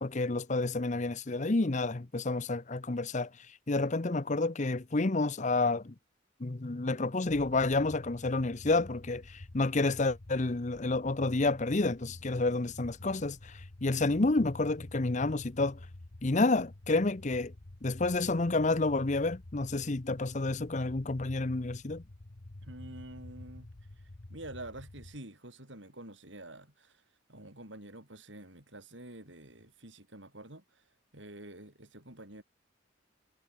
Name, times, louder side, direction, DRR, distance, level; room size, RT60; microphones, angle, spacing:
voice 1, 0.0-3.3 3.7-5.9 6.4-15.8 16.2-17.5 17.8-22.0, left 2 dB, 40° left, 0.8 m, -29 dB
sound 1, 7.2-25.2, left 1 dB, 55° left, 1.2 m, -49 dB
voice 2, 22.6-23.7 24.3-27.0 27.3-30.8 31.1-32.4, right 1 dB, 70° right, 7.8 m, -48 dB
head